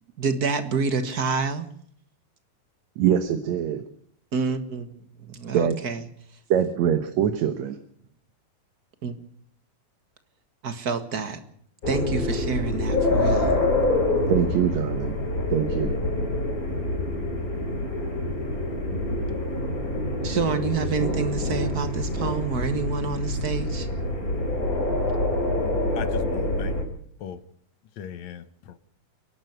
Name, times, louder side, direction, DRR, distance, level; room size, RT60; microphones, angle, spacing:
voice 1, 0.2-1.7 4.3-4.9 5.2-6.0 9.0-9.1 10.6-11.4 11.9-13.6 20.2-23.9, right 5 dB, 40° right, 1.5 m, -28 dB
voice 2, 3.0-3.8 5.5-5.8 6.5-7.8 14.3-15.2 15.5-16.0, right 9 dB, 70° right, 2.3 m, -23 dB
sound 1, 11.8-26.8, left 1 dB, 25° left, 4.5 m, -26 dB
voice 3, 25.6-26.8 27.2-27.4 28.0-28.8, left 9 dB, 70° left, 2.3 m, -39 dB
28.5 x 11.5 x 8.0 m
omnidirectional pair, 3.5 m